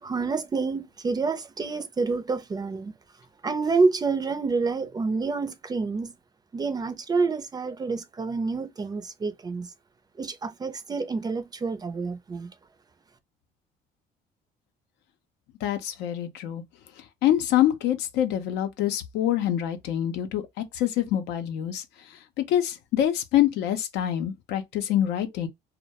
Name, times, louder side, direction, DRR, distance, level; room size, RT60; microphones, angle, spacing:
voice 1, 0.0-2.9 3.4-6.1 6.5-9.7 10.2-12.5, right 4 dB, 25° right, 0.4 m, -28 dB
voice 2, 15.6-16.6 17.2-21.8 22.4-25.5, left 11 dB, 85° left, 0.5 m, -25 dB
2.2 x 2.1 x 2.7 m
cardioid pair, 110°, 17 cm